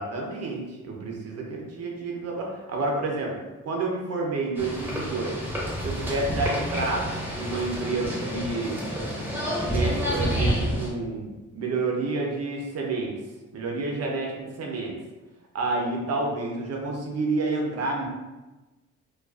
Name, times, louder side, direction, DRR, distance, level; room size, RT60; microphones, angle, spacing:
voice 1, 0.0-3.4 3.6-5.4 5.8-8.8 9.6-13.1 13.5-14.9 15.5-18.1, right 3 dB, 55° right, 0 dB, 0.7 m, -29 dB
sound 1, 4.5-10.9, equal, 5° right, 0.8 m, -29 dB
2.4 x 2.2 x 2.3 m, 1.1 s
cardioid pair, 90°, 30 cm